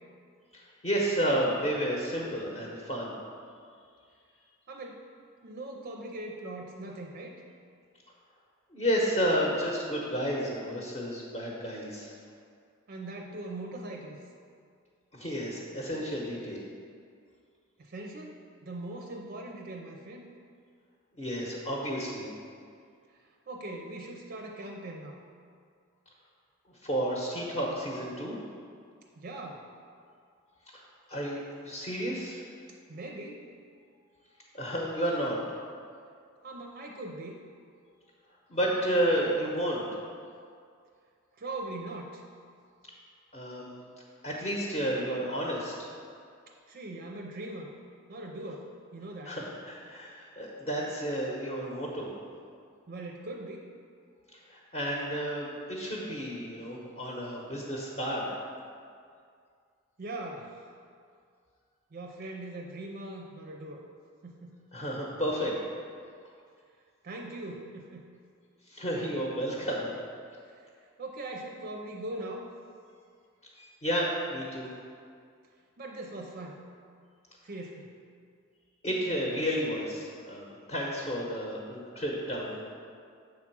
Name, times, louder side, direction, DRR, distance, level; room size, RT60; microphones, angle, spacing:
voice 1, 0.5-3.1 8.7-12.1 15.1-16.6 21.2-22.2 26.8-28.3 30.7-30.8 31.1-32.4 34.5-35.4 38.5-39.8 43.3-43.7 44.2-45.7 49.2-52.1 54.5-58.3 64.7-65.5 68.7-69.9 73.8-74.7 78.8-82.7, equal, 30° left, -3 dB, 0.9 m, -31 dB
voice 2, 4.7-5.0 5.4-7.4 12.9-14.2 17.8-20.3 23.1-25.2 29.2-29.7 32.7-33.5 36.4-37.4 41.3-42.2 46.5-47.7 48.1-49.4 52.9-53.7 60.0-60.7 61.9-63.8 64.2-64.7 67.0-68.1 70.5-70.7 71.0-72.5 75.8-76.6 77.4-77.9, right 2 dB, 45° right, 1 dB, 0.5 m, -41 dB
7.6 x 3.6 x 6.0 m, 2.2 s
head